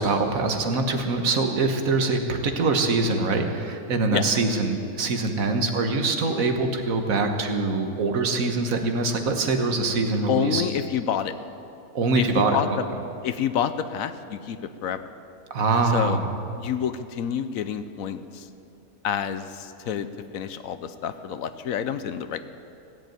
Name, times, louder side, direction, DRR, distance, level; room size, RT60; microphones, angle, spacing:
voice 1, 0.0-10.6 11.9-12.6 15.5-16.3, right 3 dB, 65° right, 5 dB, 1.6 m, -24 dB
voice 2, 10.3-11.3 12.2-12.8 13.2-15.0 15.8-16.2 16.6-18.5 19.0-20.1 20.3-22.4, left 9 dB, 70° left, 11 dB, 1.0 m, -28 dB
16.5 x 8.0 x 8.9 m, 2.8 s
omnidirectional pair, 1.6 m